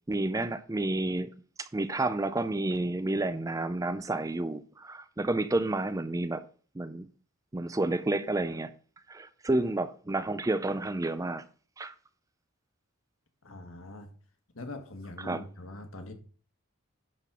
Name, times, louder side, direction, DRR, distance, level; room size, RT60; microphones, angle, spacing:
voice 1, 0.1-1.3 1.6-6.4 6.8-7.1 7.5-8.7 9.1-11.4 11.8-11.9 15.2-15.4, right 2 dB, 15° right, 0.4 m, -30 dB
voice 2, 13.4-14.1 14.5-16.1, left 2 dB, 70° left, 1.6 m, -43 dB
11.0 x 4.1 x 6.0 m
head